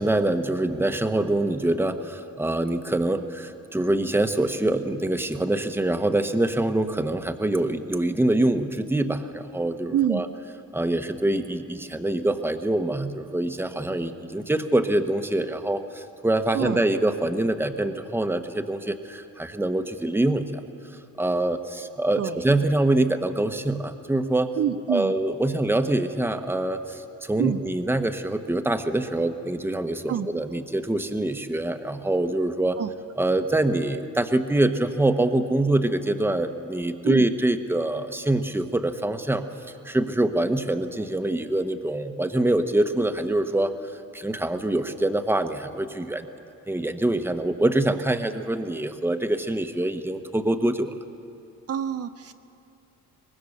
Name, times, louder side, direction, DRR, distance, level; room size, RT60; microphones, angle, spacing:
voice 1, 0.0-10.3 10.7-20.4 21.2-24.5 24.9-32.8 33.2-39.4 39.8-43.7 44.1-46.3 46.7-50.9, right 1 dB, 5° right, 7 dB, 1.2 m, -25 dB
voice 2, 24.6-25.1 27.4-27.6 30.1-30.3 32.8-32.9 37.0-37.2 51.7-52.3, right 9 dB, 55° right, 7 dB, 0.7 m, -26 dB
24.0 x 19.5 x 6.6 m, 2.7 s
cardioid pair, 90°, 30 cm